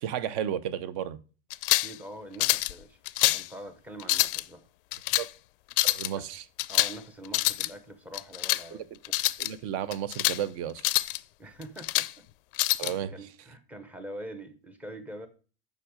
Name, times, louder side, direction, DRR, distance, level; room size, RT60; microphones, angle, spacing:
voice 1, 0.0-1.2 5.2-5.3 5.8-6.4 8.7-8.8 9.4-10.9 12.8-13.1, right 10 dB, 40° right, 0.6 m, -33 dB
sound 1, 1.5-1.9 2.4-2.7 3.0-3.5 4.0-4.4 4.9-5.3 5.7-6.1 6.6-7.0 7.2-7.7 8.1-8.6 9.0-9.5 9.9-10.4 10.8-11.2 11.6-12.1 12.6-12.9, left 18 dB, 65° left, 0.5 m, -26 dB
voice 2, 1.8-4.7 6.1-6.2 6.7-9.2 11.4-12.2 12.8-15.3, right 1 dB, 5° right, 0.7 m, -44 dB
7.5 x 5.5 x 5.0 m
supercardioid pair, 175°, 30 cm